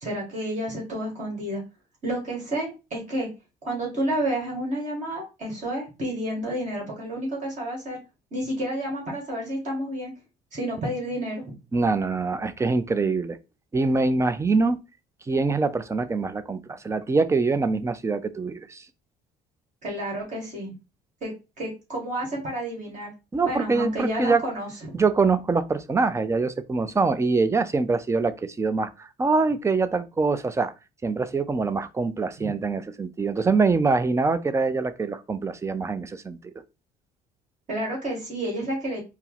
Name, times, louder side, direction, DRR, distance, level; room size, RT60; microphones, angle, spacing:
voice 1, 0.0-1.6 2.0-3.3 3.6-8.0 8.3-10.1 10.5-11.4 19.8-20.7 21.2-23.1 23.4-24.7 32.4-32.5 37.7-39.0, right 1 dB, 45° right, 1.9 m, -30 dB
voice 2, 11.7-13.4 13.7-14.8 15.3-18.8 23.3-24.4 24.9-30.7 31.0-36.5, right 4 dB, 15° right, 0.4 m, -24 dB
4.3 x 2.0 x 3.9 m
cardioid pair, 110°, 17 cm